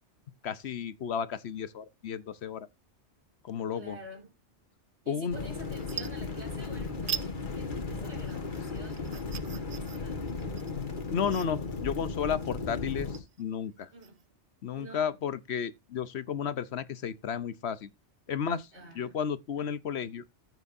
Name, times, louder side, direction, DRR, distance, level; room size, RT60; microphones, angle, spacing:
voice 1, 0.4-2.7 3.4-4.0 5.1-5.4 8.6-8.7 11.1-13.9 14.6-17.9 18.3-18.7 19.0-20.2, left 7 dB, 65° left, 1.0 m, -33 dB
voice 2, 3.7-4.3 5.0-10.2 13.9-14.2 14.7-15.1 18.7-19.1, equal, 70° right, 4.4 m, -48 dB
sound 1, 5.2-5.4 5.7-6.7 7.0-7.3 7.7-14.2, right 8 dB, 50° right, 0.5 m, -41 dB
sound 2, 5.3-13.2, left 4 dB, 45° left, 1.7 m, -36 dB
14.5 x 6.1 x 2.6 m
omnidirectional pair, 1.2 m